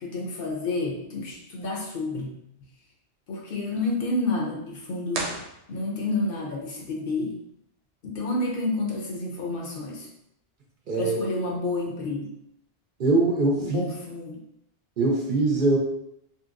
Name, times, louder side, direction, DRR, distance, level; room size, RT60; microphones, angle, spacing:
voice 1, 0.0-2.3 3.3-5.3 5.7-7.4 8.0-10.1 10.9-12.2 13.6-14.4, left 2 dB, 60° left, -1 dB, 0.8 m, -29 dB
sound 1, 5.1-6.3, right 3 dB, 85° right, 0.9 m, -34 dB
voice 2, 10.9-11.2 13.0-13.8 15.0-15.8, right 2 dB, 55° right, -1 dB, 0.7 m, -22 dB
2.8 x 2.7 x 2.4 m, 0.78 s
omnidirectional pair, 1.1 m